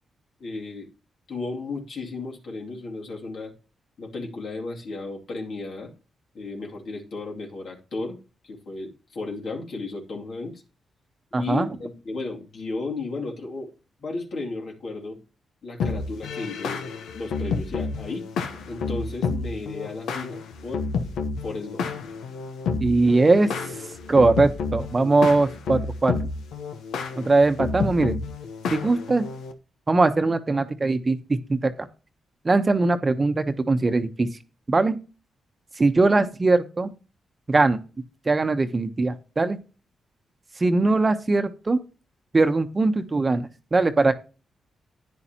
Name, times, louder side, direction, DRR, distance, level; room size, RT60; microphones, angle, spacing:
voice 1, 0.4-0.9 1.3-3.5 4.0-5.9 6.3-10.6 11.4-13.7 14.0-15.2 15.6-16.8 17.1-18.3 18.7-20.8 21.4-21.9, left 3 dB, 65° left, 0 dB, 2.6 m, -34 dB
voice 2, 11.3-11.7 22.8-23.5 24.1-26.1 27.2-28.2 28.7-29.2 29.9-31.9 32.4-34.3 34.7-35.0 35.8-36.9 37.5-37.8 38.3-39.6 40.6-41.8 42.3-44.1, right 3 dB, 30° right, 9 dB, 1.0 m, -21 dB
sound 1, 15.8-29.5, left 4 dB, 85° left, 1.0 m, -30 dB
11.0 x 9.6 x 2.9 m, 0.33 s
cardioid pair, 70°, 0 cm